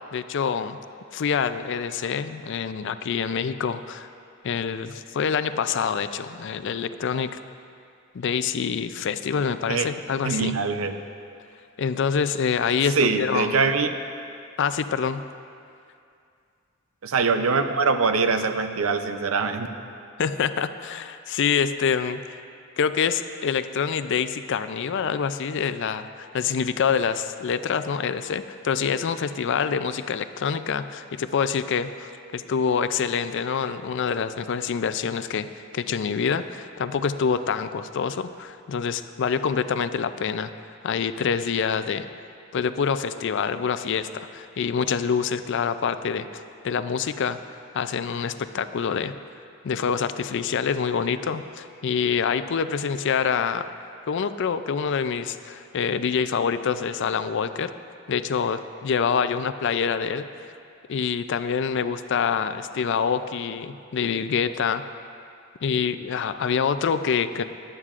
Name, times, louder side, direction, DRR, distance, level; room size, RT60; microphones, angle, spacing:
voice 1, 0.1-0.8 1.1-4.1 4.4-7.4 8.1-10.6 11.8-13.6 14.6-15.2 20.2-22.2 22.8-35.5 35.7-40.5 40.8-42.1 42.5-47.4 47.7-49.1 49.6-53.7 54.0-57.7 58.1-60.3 60.9-64.8 65.6-67.4, left 6 dB, 60° left, 12 dB, 0.4 m, -26 dB
voice 2, 10.2-11.0 13.0-14.0 17.0-19.7, right 4 dB, 80° right, 8 dB, 0.6 m, -23 dB
17.0 x 11.0 x 2.5 m, 2.4 s
head